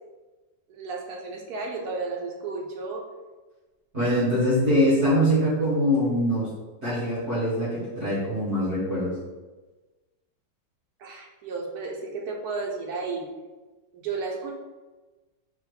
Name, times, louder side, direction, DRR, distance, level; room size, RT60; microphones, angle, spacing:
voice 1, 0.7-3.0 11.0-13.2 13.9-14.5, right 4 dB, 65° right, 0 dB, 1.2 m, -33 dB
voice 2, 3.9-6.5 6.8-9.1, equal, 40° right, -11 dB, 1.7 m, -23 dB
4.3 x 2.5 x 4.7 m, 1.2 s
omnidirectional pair, 2.0 m